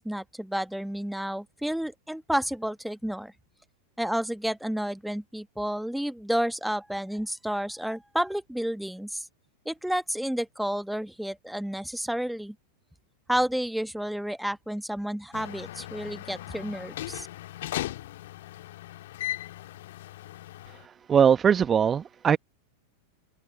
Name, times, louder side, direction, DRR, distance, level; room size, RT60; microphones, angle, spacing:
voice 1, 0.0-3.3 4.0-9.3 9.6-12.5 13.3-17.3, equal, ahead, 1.4 m, -31 dB
sound 1, 15.3-20.8, left 15 dB, 55° left, 1.8 m, -38 dB
voice 2, 21.1-22.4, right 7 dB, 20° right, 1.0 m, -20 dB
open air
figure-of-eight pair, 90°, 0 cm